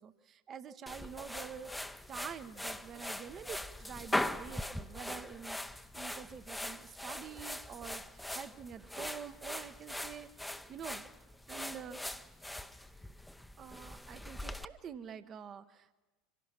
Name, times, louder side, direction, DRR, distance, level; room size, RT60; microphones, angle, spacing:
voice 1, 0.0-1.7 2.1-10.3 10.7-11.0 11.5-12.0 13.6-15.9, right 7 dB, 35° right, 12 dB, 0.9 m, -47 dB
sound 1, 0.9-14.6, left 1 dB, 5° left, 0.7 m, -41 dB
25.5 x 17.5 x 5.9 m, 1.1 s
figure-of-eight pair, 75°, 0 cm